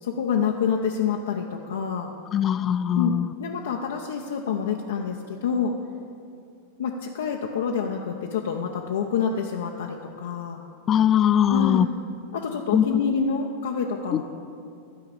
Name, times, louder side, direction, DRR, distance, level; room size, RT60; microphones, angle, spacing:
voice 1, 0.0-2.1 2.9-5.7 6.8-10.6 11.5-11.8 12.3-14.2, left 6 dB, 75° left, 1 dB, 0.7 m, -27 dB
voice 2, 2.3-3.3 10.9-11.9 12.7-12.8, left 9 dB, 30° left, 14 dB, 0.4 m, -20 dB
12.5 x 4.8 x 8.7 m, 2.5 s
hypercardioid pair, 105°, 0 cm